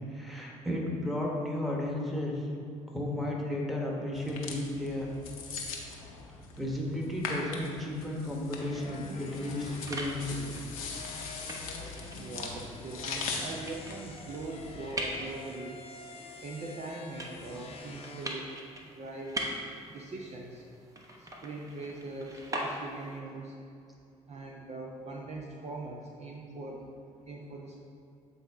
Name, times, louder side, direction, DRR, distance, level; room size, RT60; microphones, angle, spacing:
voice 1, 0.1-2.5 2.9-5.1 6.6-10.4, left 1 dB, ahead, -2 dB, 1.4 m, -33 dB
sound 1, 4.1-14.9, left 4 dB, 75° left, 0.7 m, -41 dB
sound 2, 8.5-18.4, left 3 dB, 35° left, 0.8 m, -47 dB
sound 3, 9.3-23.2, right 1 dB, 20° right, 1.0 m, -42 dB
voice 2, 12.2-15.8 16.4-18.5 19.0-19.4 19.9-20.6 21.2-23.5 24.3-26.8 27.3-27.8, right 2 dB, 40° right, -1 dB, 0.7 m, -41 dB
7.7 x 4.2 x 3.6 m, 2.4 s
figure-of-eight pair, 50°, 18 cm